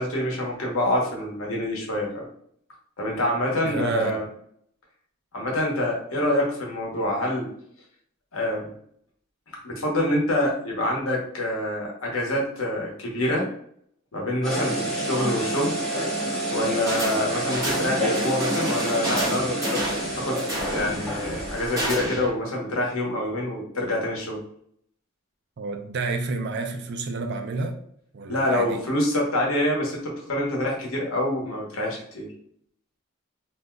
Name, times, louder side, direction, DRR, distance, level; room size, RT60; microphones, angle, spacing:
voice 1, 0.0-2.3 3.0-4.2 5.3-7.5 8.3-8.7 9.6-13.5 14.1-15.8 16.5-24.4 28.3-32.3, left 1 dB, 75° left, 1.0 m, -26 dB
voice 2, 3.6-4.3 25.6-27.8 28.1-28.8, right 4 dB, 55° right, 0.4 m, -29 dB
sound 1, 14.4-21.9, right 1 dB, 5° left, 1.0 m, -28 dB
sound 2, 16.9-17.2 17.5-22.3, equal, 15° right, 1.2 m, -31 dB
3.5 x 2.7 x 2.2 m
head